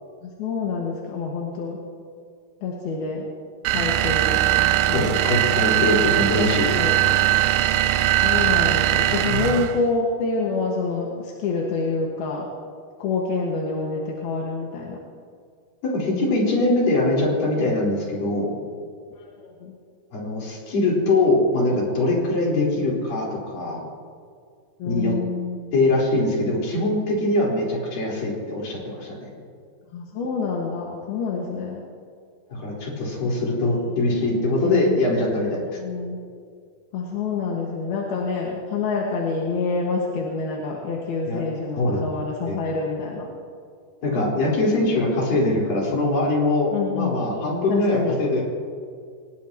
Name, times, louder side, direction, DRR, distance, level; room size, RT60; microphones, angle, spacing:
voice 1, 0.2-1.8 2.6-3.3 3.7-4.4 4.9-5.3 6.3-6.4 6.8-7.3 8.2-12.5 13.0-15.0 19.2-19.8 24.8-25.6 29.9-31.8 33.9-34.0 34.6-35.0 35.6-36.2 36.9-43.3 46.7-47.2 47.7-48.2, left 4 dB, 85° left, -2 dB, 3.6 m, -27 dB
sound 1, 3.6-9.8, right 14 dB, 85° right, 2.5 m, -20 dB
voice 2, 4.9-6.7 15.8-18.6 20.1-23.8 24.8-25.1 25.7-29.3 32.5-35.6 41.3-41.4 41.8-42.0 42.5-42.6 44.0-48.4, left 2 dB, 65° left, -4 dB, 6.1 m, -22 dB
24.0 x 19.5 x 3.0 m, 2.2 s
omnidirectional pair, 4.2 m